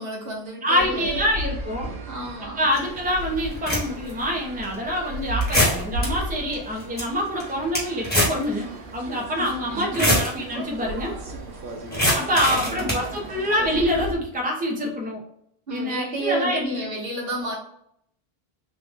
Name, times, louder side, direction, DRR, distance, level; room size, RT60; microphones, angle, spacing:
voice 1, 0.0-1.2 2.1-2.7 9.4-10.2 12.3-13.3 15.7-17.6, right 1 dB, 65° right, -2 dB, 1.3 m, -31 dB
voice 2, 0.6-1.9 2.6-11.1 12.1-15.2 15.7-16.9, equal, 10° right, -2 dB, 0.7 m, -26 dB
sound 1, 0.8-14.1, right 1 dB, 85° right, 1.1 m, -35 dB
sound 2, 2.7-2.8 3.5-4.1 4.6-4.7 5.4-6.1 6.5-6.6 6.8-7.0 7.4-8.4 8.7-8.8 9.8-10.3 11.9-13.0, equal, 10° left, 1.3 m, -22 dB
3.7 x 2.5 x 3.5 m, 0.71 s
omnidirectional pair, 1.1 m